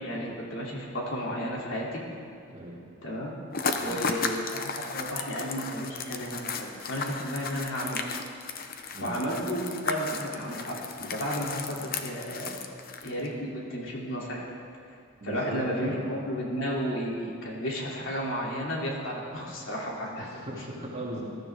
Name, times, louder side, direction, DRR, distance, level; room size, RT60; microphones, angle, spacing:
voice 1, 0.0-2.0 3.0-3.3 3.8-8.1 9.0-12.7 13.0-14.4 15.2-20.3 20.6-20.7, equal, 65° left, -4 dB, 3.0 m, -33 dB
voice 2, 2.5-2.8 3.8-4.0 8.9-9.2 15.2-16.0 20.2-21.2, right 1 dB, 30° right, -5 dB, 2.6 m, -38 dB
sound 1, 3.5-13.3, left 5 dB, 45° left, 0.8 m, -35 dB
21.0 x 13.0 x 3.6 m, 2.6 s
head